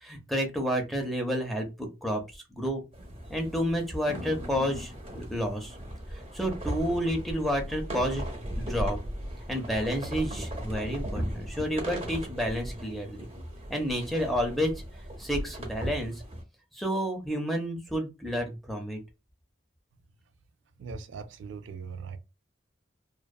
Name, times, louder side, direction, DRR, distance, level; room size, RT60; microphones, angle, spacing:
voice 1, 0.0-2.8 3.3-5.8 6.2-8.2 8.6-9.0 9.5-13.3 13.7-14.7 15.2-16.1 16.8-19.0, equal, ahead, 0.5 m, -30 dB
sound 1, 2.9-16.4, equal, 30° right, 0.7 m, -37 dB
voice 2, 20.8-22.2, right 5 dB, 75° right, 0.3 m, -40 dB
2.6 x 2.2 x 2.2 m
head